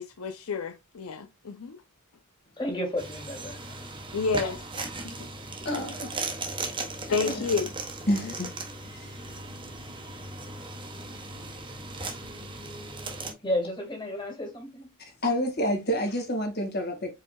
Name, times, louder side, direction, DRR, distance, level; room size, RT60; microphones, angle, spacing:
voice 1, 0.0-1.8 4.1-4.6 5.0-5.2 7.1-7.7, left 4 dB, 80° left, 0.5 m, -29 dB
voice 2, 2.6-3.8 13.4-14.9, left 1 dB, 20° left, 2.0 m, -32 dB
sound 1, 3.0-13.3, right 3 dB, 25° right, 1.1 m, -37 dB
voice 3, 5.7-6.2 7.1-7.4 8.1-8.5 8.9-9.2 15.2-17.1, equal, 50° left, 1.7 m, -29 dB
4.9 x 4.6 x 2.3 m
head